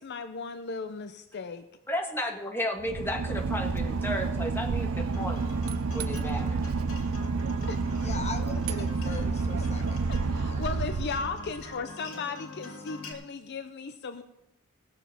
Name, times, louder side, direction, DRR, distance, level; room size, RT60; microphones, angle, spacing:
voice 1, 0.0-1.6 7.6-7.8 9.6-14.2, left 4 dB, 55° left, 9 dB, 0.6 m, -36 dB
voice 2, 1.9-5.4 5.9-6.6, equal, 10° left, 2 dB, 1.5 m, -33 dB
Boat Water vehicle / Engine, 2.8-11.8, right 4 dB, 80° right, 0.6 m, -30 dB
Acoustic guitar, 5.1-13.1, left 2 dB, 85° left, 2.5 m, -44 dB
voice 3, 7.9-10.1 10.5-10.6, left 3 dB, 30° left, 6 dB, 1.1 m, -40 dB
18.0 x 7.1 x 5.8 m, 0.90 s
head